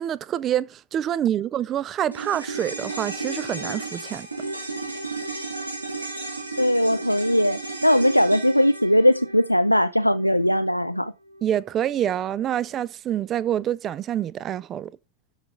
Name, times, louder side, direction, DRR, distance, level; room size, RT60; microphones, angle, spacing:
voice 1, 0.0-4.3 11.4-14.9, right 10 dB, 30° right, 0.5 m, -26 dB
sound 1, 2.1-10.6 10.9-11.0, right 3 dB, 80° right, 3.1 m, -34 dB
voice 2, 6.6-11.1, equal, 90° left, 0.4 m, -20 dB
12.5 x 4.9 x 3.9 m
figure-of-eight pair, 90°, 0 cm